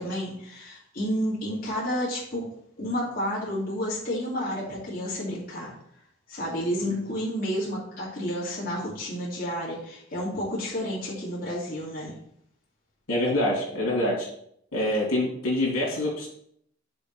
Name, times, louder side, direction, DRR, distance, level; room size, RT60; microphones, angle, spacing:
voice 1, 0.0-2.5 2.8-5.7 6.3-12.2, equal, 45° left, -7 dB, 2.5 m, -30 dB
voice 2, 13.1-14.3 14.7-16.3, left 1 dB, 85° left, -3 dB, 3.0 m, -25 dB
6.9 x 3.8 x 6.2 m, 0.67 s
head